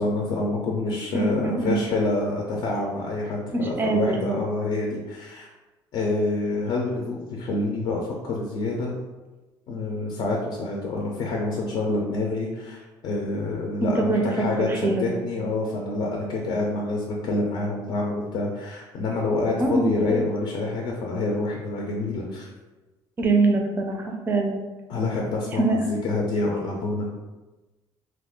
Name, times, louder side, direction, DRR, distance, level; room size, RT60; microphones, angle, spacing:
voice 1, 0.0-5.5 5.9-9.0 9.7-22.5 24.9-25.8 26.0-27.1, left 2 dB, 55° left, -1 dB, 0.5 m, -27 dB
voice 2, 1.1-1.8 3.5-4.4 13.8-14.2 14.6-15.2 19.6-20.0 23.2-24.6 25.6-25.8, right 3 dB, 25° right, 2 dB, 0.4 m, -24 dB
2.8 x 2.4 x 3.5 m, 1.1 s
cardioid pair, 150°, 9 cm